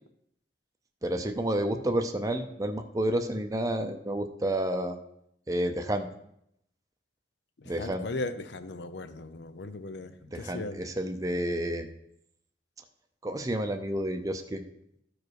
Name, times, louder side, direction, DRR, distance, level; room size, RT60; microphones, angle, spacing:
voice 1, 1.0-5.0 5.5-6.1 7.7-8.0 10.3-11.9 13.2-14.6, right 1 dB, 20° right, 5 dB, 0.6 m, -30 dB
voice 2, 7.6-10.8, left 2 dB, 75° left, 11 dB, 0.7 m, -37 dB
13.0 x 4.9 x 4.7 m, 0.75 s
head